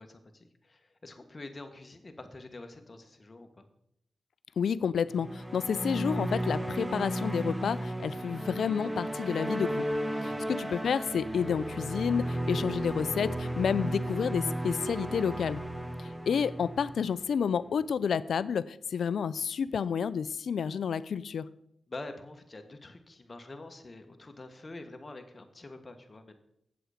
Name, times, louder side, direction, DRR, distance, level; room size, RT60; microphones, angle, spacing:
voice 1, 0.0-3.7 10.2-10.6 21.9-26.4, left 2 dB, 35° left, 6 dB, 1.3 m, -46 dB
voice 2, 4.6-9.9 10.2-15.6 16.0-21.5, left 7 dB, 80° left, 17 dB, 0.3 m, -30 dB
sound 1, 5.1-17.6, right 1 dB, 15° right, 0.8 m, -34 dB
7.8 x 7.8 x 5.0 m, 0.75 s
cardioid pair, 60°, 0 cm